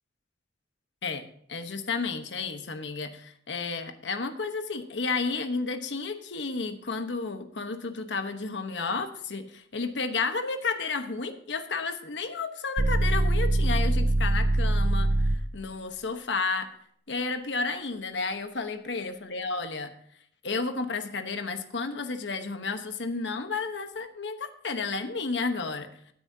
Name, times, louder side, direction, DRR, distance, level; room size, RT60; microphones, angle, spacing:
voice 1, 1.0-16.7 17.1-19.9 20.4-25.9, left 4 dB, 85° left, 8 dB, 1.1 m, -32 dB
sound 1, 12.8-15.6, right 1 dB, 35° right, 0.6 m, -23 dB
17.0 x 9.6 x 2.8 m, 0.63 s
head